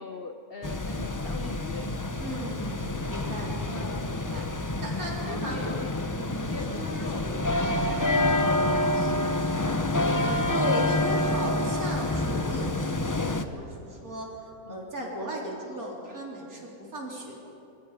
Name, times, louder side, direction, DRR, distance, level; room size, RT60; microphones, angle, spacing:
voice 1, 0.0-1.9 3.7-4.1 5.2-5.9 6.3-7.3 7.7-9.3 14.6-14.8, left 3 dB, 45° left, 7 dB, 1.0 m, -40 dB
sound 1, 0.6-13.4, left 2 dB, 20° left, 0.6 m, -28 dB
voice 2, 2.2-4.4 4.8-5.6 6.1-6.8 7.6-8.1 10.2-14.3 14.7-17.4, right 1 dB, 70° right, -2 dB, 4.3 m, -37 dB
27.0 x 23.0 x 5.0 m, 2.8 s
omnidirectional pair, 1.6 m